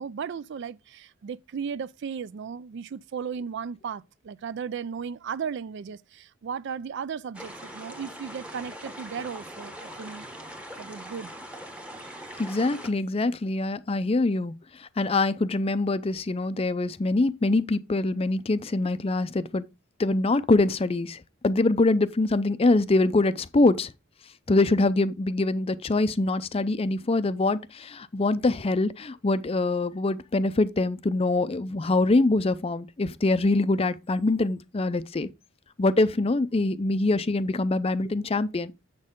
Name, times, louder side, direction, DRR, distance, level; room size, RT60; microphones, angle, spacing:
voice 1, 0.0-10.3 10.8-11.3, right 6 dB, 55° right, 0.3 m, -35 dB
sound 1, 7.3-12.9, equal, 5° right, 0.9 m, -41 dB
voice 2, 12.4-14.5 14.8-19.7 20.0-23.9 24.5-35.3 35.8-38.7, left 2 dB, 25° left, 0.5 m, -24 dB
7.6 x 6.4 x 3.7 m
head